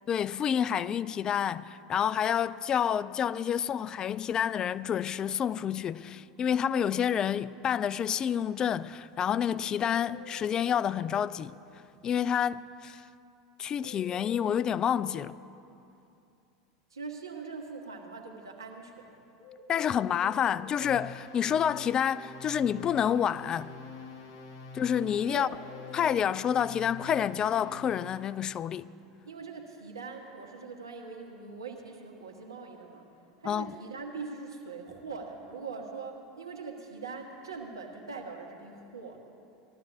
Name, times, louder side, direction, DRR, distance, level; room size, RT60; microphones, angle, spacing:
voice 1, 0.1-11.5 12.0-13.0 13.6-15.3 19.7-23.7 24.7-25.5 25.9-28.9 33.4-33.7, left 8 dB, 35° left, 0.3 m, -28 dB
sound 1, 9.8-11.2 13.8-15.2 19.4-20.8 25.4-26.8, left 3 dB, 15° left, 2.0 m, -49 dB
voice 2, 16.9-19.2 25.3-25.5 29.2-33.1 33.4-39.2, right 4 dB, 90° right, 1.5 m, -42 dB
sound 2, 20.8-28.4, left 4 dB, 65° left, 1.7 m, -45 dB
20.0 x 13.5 x 2.7 m
hypercardioid pair, 85°, 2 cm